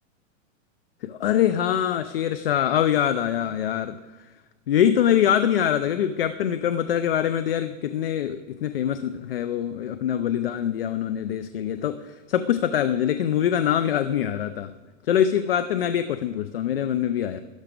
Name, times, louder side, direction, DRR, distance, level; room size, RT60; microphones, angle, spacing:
voice 1, 1.0-4.0 4.7-14.7 15.1-17.4, left 10 dB, 45° left, 11 dB, 0.4 m, -24 dB
12.5 x 11.0 x 5.1 m, 1.3 s
supercardioid pair, 180°, 40 cm